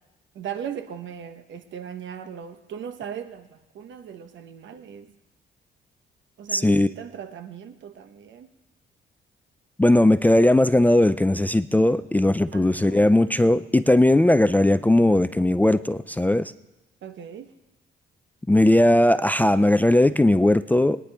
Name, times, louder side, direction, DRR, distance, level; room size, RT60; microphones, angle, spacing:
voice 1, 0.3-5.1 6.4-8.5 12.5-13.1 17.0-17.5, right 8 dB, 70° right, 9 dB, 1.1 m, -38 dB
voice 2, 6.5-6.9 9.8-16.5 18.5-21.0, left 1 dB, 10° left, 13 dB, 0.4 m, -18 dB
22.0 x 9.8 x 3.4 m, 1.0 s
cardioid pair, 90°, 20 cm